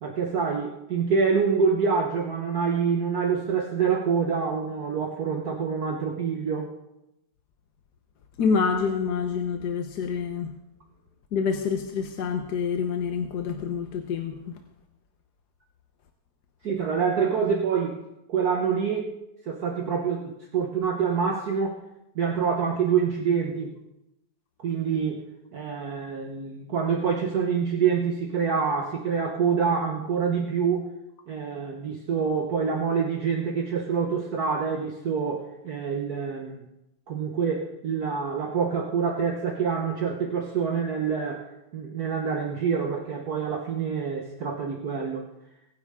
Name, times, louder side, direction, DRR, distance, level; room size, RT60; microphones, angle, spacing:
voice 1, 0.0-6.7 16.6-18.0 18.3-19.1 19.5-21.8 22.1-23.7 24.6-25.2 25.5-30.8 31.3-36.7 37.1-41.5 41.7-45.2, right 6 dB, 55° right, 0 dB, 1.6 m, -26 dB
voice 2, 8.4-10.5 11.3-14.6, left 5 dB, 60° left, 4 dB, 1.4 m, -27 dB
23.5 x 10.0 x 3.7 m, 0.89 s
omnidirectional pair, 2.1 m